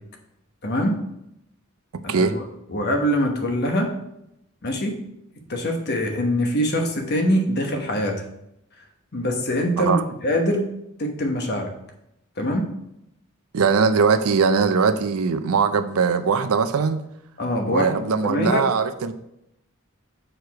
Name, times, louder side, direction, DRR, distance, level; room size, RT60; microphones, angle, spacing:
voice 1, 0.6-1.0 2.0-2.3 2.7-3.9 4.6-5.0 5.5-8.2 9.1-10.7 11.0-11.7 12.4-12.7 17.4-17.9 18.2-18.6, equal, 50° left, 1.1 m, -23 dB
voice 2, 13.5-17.0 17.7-19.1, right 5 dB, 85° right, 0.5 m, -20 dB
6.4 x 4.8 x 4.7 m
head